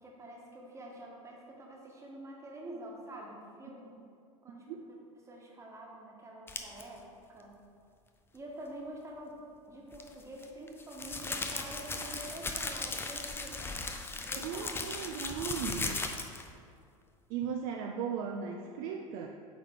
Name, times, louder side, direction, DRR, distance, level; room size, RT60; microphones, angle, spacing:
voice 1, 0.0-4.0 4.4-4.7 5.2-7.0 7.3-7.5 8.3-9.4 9.7-13.7 14.2-15.0, right 1 dB, 15° right, -2 dB, 1.4 m, -47 dB
sound 1, 6.5-6.8 9.9-16.5, left 3 dB, 15° left, 0.5 m, -37 dB
voice 2, 14.4-16.1 17.3-19.3, right 7 dB, 45° right, 3 dB, 0.4 m, -37 dB
8.4 x 3.6 x 3.6 m, 2.3 s
figure-of-eight pair, 80°, 18 cm